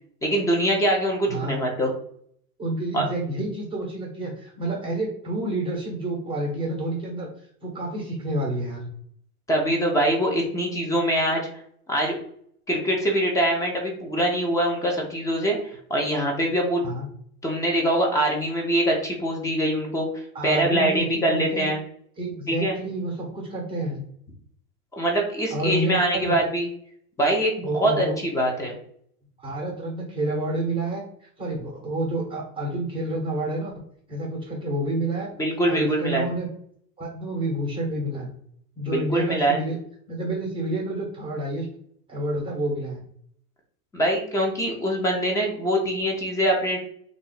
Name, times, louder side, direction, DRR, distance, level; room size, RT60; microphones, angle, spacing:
voice 1, 0.2-1.9 2.9-3.0 9.5-11.4 11.9-12.2 12.7-15.6 15.9-16.8 17.4-20.1 20.4-21.8 22.5-22.8 25.0-26.7 27.2-28.1 28.3-28.7 35.4-36.3 38.9-39.6 43.9-46.8, right 1 dB, 5° left, 0 dB, 0.5 m, -23 dB
voice 2, 2.6-7.3 7.6-8.9 16.8-17.1 20.3-21.7 22.2-24.0 25.5-26.4 27.6-28.2 29.4-33.7 34.1-35.3 35.7-36.5 37.0-38.3 38.8-39.8 40.1-41.7 42.1-43.0, right 1 dB, 10° right, -1 dB, 0.9 m, -29 dB
2.7 x 2.4 x 3.9 m, 0.63 s
hypercardioid pair, 120°, 46 cm